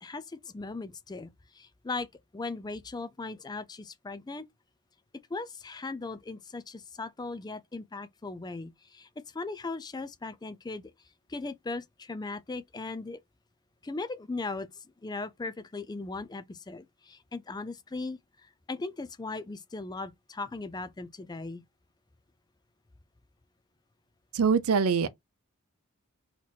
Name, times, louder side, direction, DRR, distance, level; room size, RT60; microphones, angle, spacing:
voice 1, 0.0-2.1 2.3-4.4 5.3-10.9 11.3-13.2 13.8-21.6, left 3 dB, 20° left, 0.4 m, -38 dB
voice 2, 24.3-25.1, right 5 dB, 75° right, 0.6 m, -23 dB
4.1 x 3.0 x 4.3 m
head